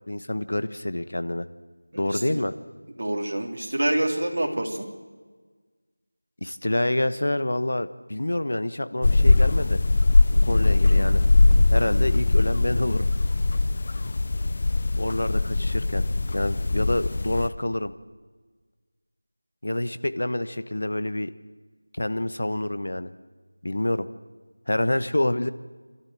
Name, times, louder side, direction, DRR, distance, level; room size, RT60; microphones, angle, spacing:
voice 1, 0.0-1.5 2.0-2.5 6.4-9.8 10.3-11.2 11.7-13.1 15.0-16.0 16.3-17.9 19.6-21.3 21.9-23.1 23.6-24.1 24.7-25.5, left 1 dB, 70° left, 12 dB, 1.2 m, -27 dB
voice 2, 1.9-2.4 3.0-4.9, right 1 dB, 55° right, 2 dB, 3.5 m, -27 dB
sound 1, 9.0-17.5, left 2 dB, 35° left, 0.9 m, -21 dB
27.5 x 13.5 x 7.6 m, 1.4 s
figure-of-eight pair, 175°, 0 cm